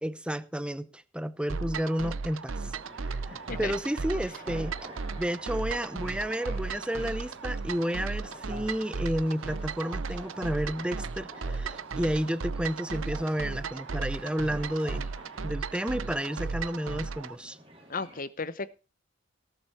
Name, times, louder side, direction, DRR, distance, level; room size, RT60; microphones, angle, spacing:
voice 1, 0.0-2.7 3.0-4.7 5.1-15.1 15.4-17.6, equal, 5° right, 0.7 m, -31 dB
sound 1, 1.5-17.4, right 4 dB, 80° right, 0.7 m, -35 dB
sound 2, 2.5-18.2, equal, 30° right, 3.5 m, -50 dB
voice 2, 17.9-18.8, left 4 dB, 45° left, 0.9 m, -34 dB
18.5 x 7.8 x 4.3 m
head